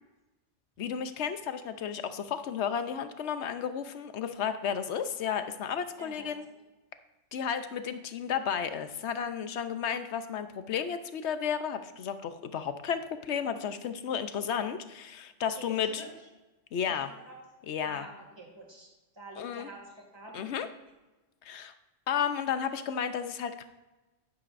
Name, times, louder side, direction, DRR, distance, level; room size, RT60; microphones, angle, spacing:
voice 1, 0.8-6.5 7.3-16.0 16.7-17.1 17.7-18.1 19.4-19.7 20.3-20.7 21.4-21.7 22.1-23.7, left 7 dB, 65° left, 10 dB, 1.0 m, -33 dB
voice 2, 6.0-6.6 15.5-16.1 16.8-17.4 17.8-20.5, right 1 dB, 20° right, -1 dB, 2.2 m, -48 dB
10.5 x 10.0 x 2.5 m, 1.1 s
omnidirectional pair, 1.3 m